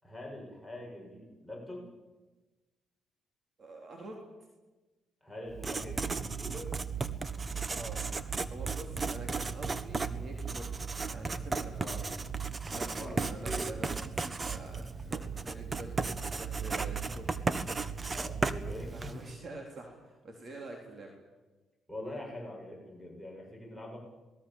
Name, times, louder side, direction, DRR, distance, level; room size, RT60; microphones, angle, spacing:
voice 1, 0.0-1.9 5.2-6.7 11.8-12.0 13.0-13.8 18.1-19.3 21.9-24.0, left 1 dB, 5° right, 1 dB, 7.3 m, -43 dB
voice 2, 3.6-4.2 7.7-12.2 12.7-17.3 18.9-21.1, right 2 dB, 45° right, 1 dB, 3.8 m, -47 dB
Writing, 5.5-19.3, right 4 dB, 30° right, 1.3 m, -35 dB
27.5 x 20.0 x 7.4 m, 1.2 s
cardioid pair, 90°, 0 cm